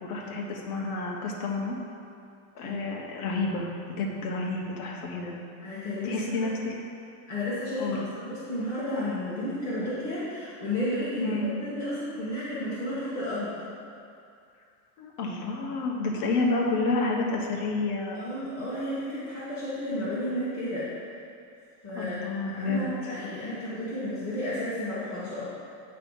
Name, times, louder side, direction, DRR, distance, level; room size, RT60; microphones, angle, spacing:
voice 1, 0.0-1.8 2.5-3.7 4.0-5.4 6.0-6.7 7.8-8.1 11.2-11.5 15.0-18.2 21.9-23.1, left 3 dB, 70° left, -1 dB, 1.4 m, -30 dB
voice 2, 5.6-6.5 7.3-13.5 18.1-20.9 21.8-25.4, left 1 dB, 20° left, -12 dB, 1.5 m, -32 dB
9.7 x 3.3 x 5.5 m, 2.5 s
supercardioid pair, 175°, 47 cm